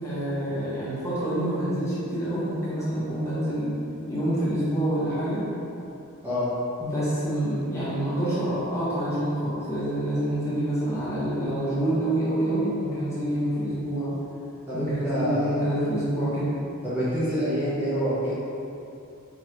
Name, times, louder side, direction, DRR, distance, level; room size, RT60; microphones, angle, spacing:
voice 1, 0.0-3.7 4.1-5.4 6.8-14.1 14.7-16.6, right 1 dB, 15° left, -11 dB, 1.1 m, -27 dB
voice 2, 6.2-6.5 14.7-15.6 16.8-18.3, equal, 10° right, -13 dB, 0.9 m, -27 dB
4.8 x 3.2 x 2.9 m, 2.8 s
head